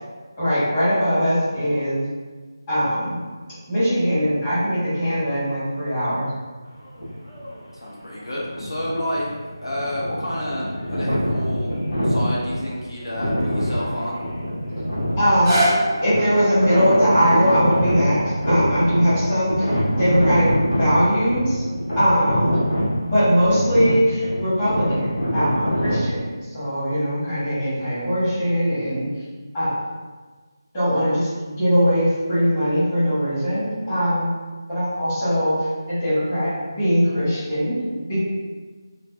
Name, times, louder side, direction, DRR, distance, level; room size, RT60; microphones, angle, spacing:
voice 1, 0.4-2.0 2.7-3.2 3.7-6.3 15.2-15.6 16.0-21.6 21.9-22.6 23.0-26.3 26.5-29.1 29.5-29.7 30.7-34.3 34.7-35.6 35.9-38.2, equal, 20° left, -14 dB, 1.1 m, -21 dB
sound 1, 6.8-7.6 8.2-26.1, equal, 60° left, 1.0 m, -24 dB
voice 2, 7.8-9.3 9.6-11.7 12.0-14.2, left 1 dB, 85° left, -6 dB, 0.6 m, -29 dB
sound 2, 15.2-21.3 21.9-22.0, right 1 dB, 5° right, 0.4 m, -29 dB
2.7 x 2.1 x 2.2 m, 1.4 s
figure-of-eight pair, 160°, 2 cm